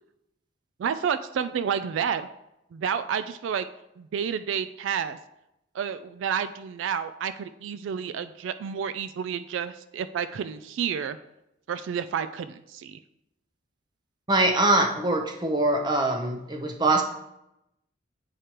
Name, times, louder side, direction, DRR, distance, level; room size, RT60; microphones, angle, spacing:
voice 1, 0.8-2.3 2.7-3.7 4.0-5.2 5.7-11.2 11.7-13.0, right 7 dB, 85° right, 12 dB, 0.3 m, -30 dB
voice 2, 14.3-17.0, right 2 dB, 25° right, 3 dB, 0.7 m, -23 dB
8.2 x 4.8 x 2.9 m, 0.86 s
head